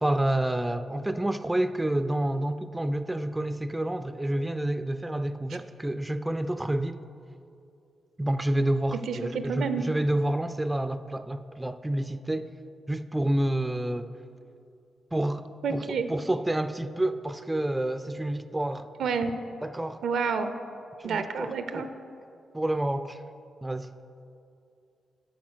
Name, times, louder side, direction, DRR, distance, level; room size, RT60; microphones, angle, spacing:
voice 1, 0.0-7.0 8.2-12.5 12.9-14.1 15.1-18.9 19.6-20.0 21.0-21.9 22.5-23.2 23.6-23.9, right 1 dB, 15° right, 12 dB, 0.3 m, -29 dB
voice 2, 9.1-9.8 15.6-16.1 19.0-19.3 20.0-20.5 21.0-21.9, right 5 dB, 75° right, 9 dB, 0.5 m, -29 dB
9.3 x 4.3 x 6.4 m, 2.6 s
supercardioid pair, 55°, 0 cm